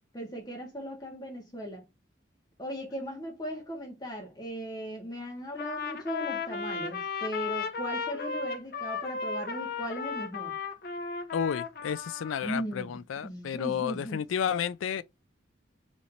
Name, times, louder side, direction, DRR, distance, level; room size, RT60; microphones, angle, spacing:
voice 1, 0.0-1.8 2.6-10.5 12.4-14.2, equal, 20° left, 1.5 m, -38 dB
Trumpet, 5.6-12.5, left 5 dB, 50° left, 0.7 m, -35 dB
voice 2, 11.3-15.0, left 8 dB, 90° left, 0.4 m, -31 dB
4.2 x 3.1 x 4.0 m
head